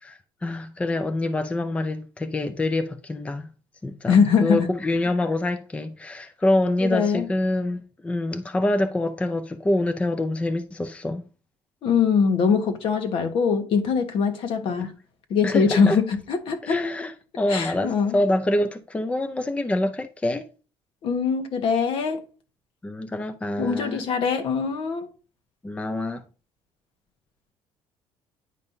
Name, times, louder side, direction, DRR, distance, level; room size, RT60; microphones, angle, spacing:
voice 1, 0.0-3.5 3.8-11.2 14.6-14.9 15.4-16.0 16.6-20.5 22.8-24.1 25.6-26.2, left 1 dB, 10° left, 0.5 m, -26 dB
voice 2, 4.1-4.7 6.8-7.3 11.8-14.9 15.3-16.8 17.5-18.2 21.0-22.2 23.6-25.1, left 6 dB, 60° left, 1.2 m, -22 dB
9.5 x 5.3 x 2.7 m
cardioid pair, 130°, 10 cm